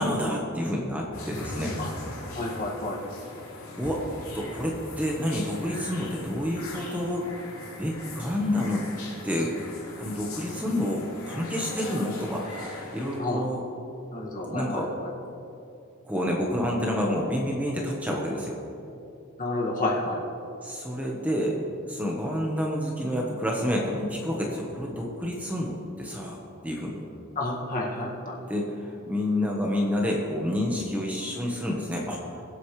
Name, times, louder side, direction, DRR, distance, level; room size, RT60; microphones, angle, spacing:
voice 1, 0.0-1.8 3.8-4.0 4.3-7.3 7.8-8.8 9.2-9.6 10.0-13.6 14.5-14.9 16.0-18.6 20.6-21.6 21.9-26.4 26.6-27.1 28.5-32.4, left 1 dB, 5° right, -2 dB, 1.1 m, -29 dB
sound 1, 1.1-13.2, left 2 dB, 75° left, 3.2 m, -40 dB
voice 2, 2.3-3.0 13.2-13.4 14.1-15.1 19.4-20.2 27.4-28.4, left 2 dB, 40° left, -3 dB, 1.9 m, -30 dB
22.5 x 8.2 x 3.2 m, 2.7 s
head